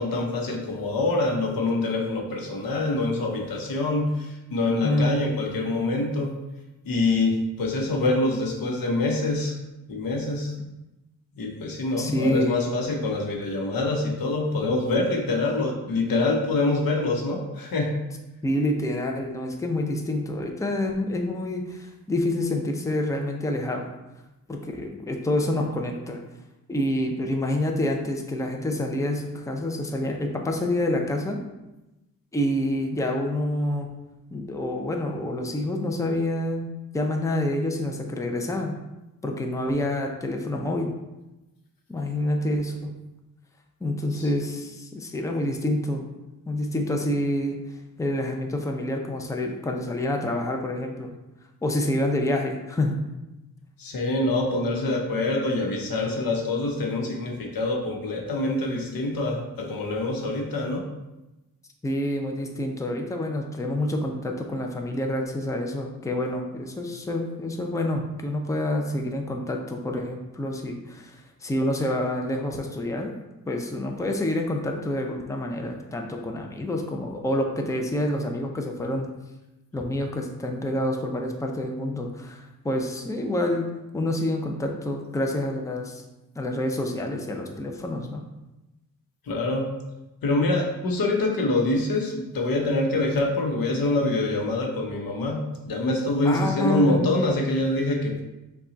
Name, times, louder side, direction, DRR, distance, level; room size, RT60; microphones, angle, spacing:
voice 1, 0.0-6.3 6.8-9.6 9.9-10.5 11.4-18.0 44.1-44.3 53.8-60.9 89.3-89.7 90.2-98.2, left 2 dB, 85° left, 1 dB, 0.9 m, -25 dB
voice 2, 4.8-5.3 10.6-10.7 12.0-12.7 18.4-23.9 24.5-26.2 26.7-31.4 32.3-33.9 34.3-36.7 36.9-38.7 39.2-40.9 41.9-42.9 43.8-46.1 46.5-47.6 48.0-51.1 51.6-53.0 61.8-73.1 73.5-79.1 79.7-83.7 83.9-86.0 86.4-88.2 96.3-97.1, left 1 dB, 10° left, 2 dB, 0.5 m, -27 dB
5.6 x 2.3 x 3.9 m, 1.0 s
wide cardioid pair, 95°, 34 cm